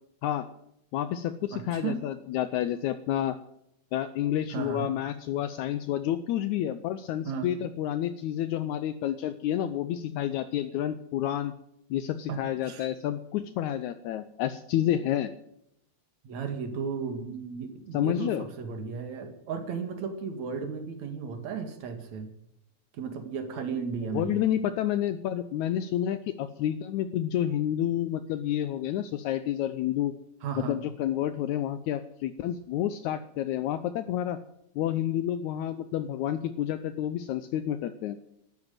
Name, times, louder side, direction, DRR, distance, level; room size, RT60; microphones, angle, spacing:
voice 1, 0.9-3.4 3.9-11.5 11.9-15.3 17.9-18.5 24.1-30.1 30.7-34.4 34.8-38.2, left 11 dB, 75° left, 11 dB, 2.0 m, -29 dB
voice 2, 1.5-2.0 4.5-4.9 7.2-7.5 12.3-12.4 12.7-12.9 16.2-22.3 22.9-24.4 30.4-30.8, right 6 dB, 65° right, 6 dB, 3.3 m, -34 dB
13.0 x 11.0 x 9.2 m, 0.75 s
omnidirectional pair, 3.5 m